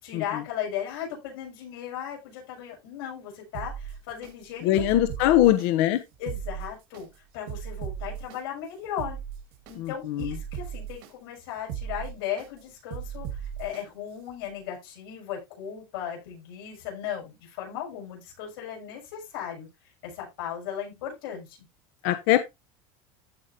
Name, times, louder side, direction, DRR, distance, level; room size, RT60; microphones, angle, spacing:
voice 1, 0.0-4.9 5.2-5.5 6.2-7.1 7.3-9.2 9.7-19.7 20.0-21.6, left 9 dB, 85° left, -1 dB, 6.8 m, -36 dB
sound 1, 3.5-4.3 4.8-5.7 6.1-7.0 7.5-8.4 8.8-9.8 10.2-11.1 11.6-12.5 12.9-13.8 14.3-14.4, right 9 dB, 75° right, 2.3 m, -36 dB
voice 2, 4.6-6.0 9.8-10.3 22.0-22.4, left 13 dB, 60° left, 10 dB, 0.9 m, -22 dB
15.0 x 5.1 x 2.7 m, 0.21 s
cardioid pair, 160°, 12 cm